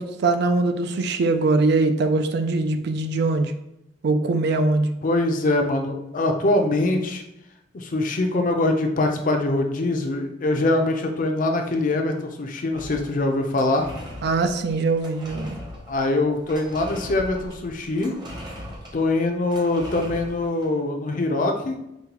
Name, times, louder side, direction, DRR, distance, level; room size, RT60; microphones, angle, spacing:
voice 1, 0.0-3.5 4.0-4.9 14.2-15.6, right 3 dB, 60° right, 8 dB, 0.4 m, -22 dB
voice 2, 5.0-7.2 7.7-13.9 15.9-18.1 18.9-21.8, left 2 dB, 45° left, 4 dB, 0.5 m, -23 dB
sound 1, 12.7-20.7, equal, 25° right, 0.9 m, -39 dB
5.2 x 2.2 x 2.9 m, 0.84 s
head